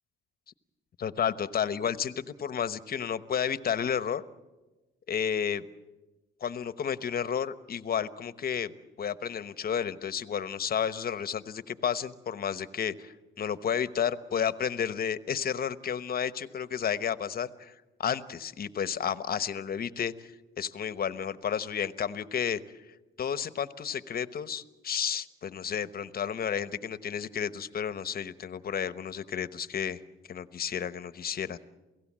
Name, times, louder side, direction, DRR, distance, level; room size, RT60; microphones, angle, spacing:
voice 1, 1.0-2.1 2.4-4.2 5.1-5.6 6.4-8.7 9.0-17.7 18.0-20.3 20.6-22.6 23.2-30.0 30.3-31.6, left 8 dB, 50° left, 13 dB, 1.0 m, -31 dB
28.5 x 17.0 x 7.5 m, 1.1 s
cardioid pair, 90°, 20 cm